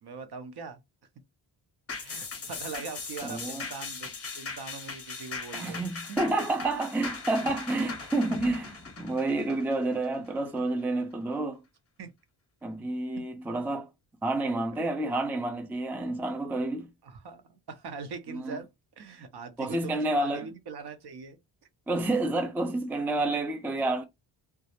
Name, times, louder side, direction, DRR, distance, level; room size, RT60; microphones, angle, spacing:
voice 1, 0.0-0.8 2.0-5.8 6.1-6.2 12.0-12.1 14.7-14.8 17.0-18.7 19.0-21.4, right 5 dB, 55° right, 0.7 m, -41 dB
sound 1, 1.9-10.6 11.0-11.1, left 4 dB, 30° left, 0.7 m, -39 dB
voice 2, 3.2-3.6 5.5-11.6 12.6-13.9 14.2-16.9 18.3-18.6 19.6-20.5 21.9-24.0, right 2 dB, 5° right, 0.4 m, -29 dB
2.2 x 2.0 x 2.8 m
cardioid pair, 90°, 49 cm